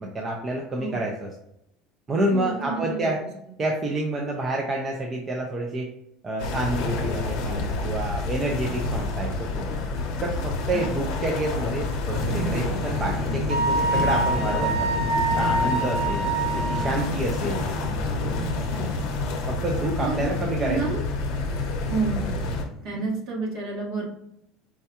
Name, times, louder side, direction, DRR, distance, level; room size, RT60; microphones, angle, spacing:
voice 1, 0.0-1.3 2.1-3.2 3.6-5.9 6.2-9.5 10.2-14.9 15.4-16.3 16.6-17.7 19.5-20.8, right 1 dB, 20° right, 0 dB, 0.4 m, -28 dB
voice 2, 2.3-3.3 10.7-11.1 18.7-18.9 20.0-20.3 20.7-21.0 21.9-24.0, right 4 dB, 50° right, -2 dB, 1.3 m, -30 dB
sound 1, 6.4-22.6, left 3 dB, 60° left, 0.7 m, -29 dB
sound 2, 12.1-23.1, equal, 20° left, 0.9 m, -34 dB
Wind instrument woodwind instrument, 13.5-17.0, right 2 dB, 75° right, 0.7 m, -25 dB
4.5 x 2.2 x 2.8 m, 0.78 s
cardioid pair, 155°, 0 cm